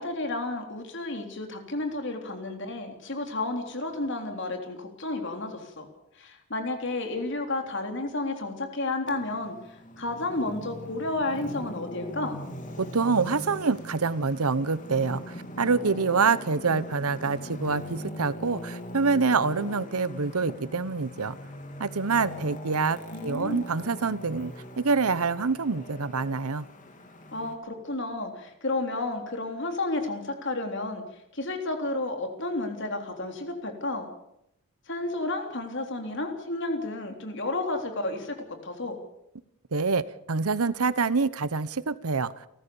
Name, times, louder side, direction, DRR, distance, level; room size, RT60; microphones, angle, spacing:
voice 1, 0.0-5.9 6.2-12.4 23.1-23.7 27.3-31.0 31.3-34.1 34.9-38.4 38.6-39.0, left 2 dB, 55° left, 3.6 m, -31 dB
Traffic noise roadway noise, 9.0-27.5, left 1 dB, 35° left, 3.1 m, -41 dB
voice 2, 12.8-21.4 21.8-26.6 39.7-42.3, right 4 dB, 80° right, 0.9 m, -26 dB
29.5 x 14.0 x 7.1 m
head